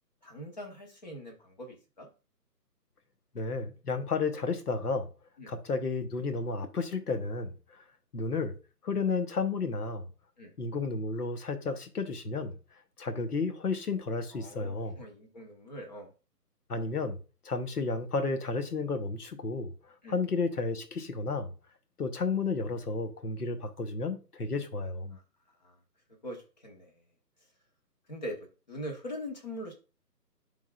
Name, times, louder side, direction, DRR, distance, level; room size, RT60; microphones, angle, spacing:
voice 1, 0.2-2.1 5.4-5.5 10.4-10.5 14.3-16.1 20.0-20.2 25.1-25.2 25.6-25.8 26.2-26.9 28.1-28.4 28.7-29.7, equal, 25° left, 1.0 m, -42 dB
voice 2, 3.3-5.1 5.5-7.6 8.1-8.5 8.8-10.0 10.6-12.5 13.0-15.0 16.7-17.2 17.4-19.7 20.1-21.5 22.0-25.2, left 4 dB, 65° left, 1.1 m, -32 dB
10.5 x 3.7 x 2.4 m
figure-of-eight pair, 155°, 49 cm